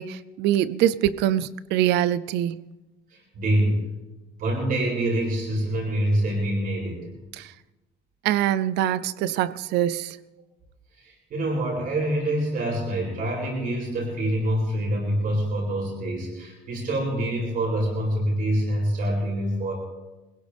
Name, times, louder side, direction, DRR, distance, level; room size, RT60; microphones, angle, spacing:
voice 1, 0.0-2.6 7.4-7.5 8.2-10.2, right 11 dB, 85° right, 18 dB, 0.6 m, -24 dB
voice 2, 3.1-3.8 4.4-7.1 11.0-19.7, right 1 dB, 60° right, -3 dB, 7.5 m, -26 dB
22.0 x 16.5 x 3.5 m, 1.1 s
cardioid pair, 110°, 17 cm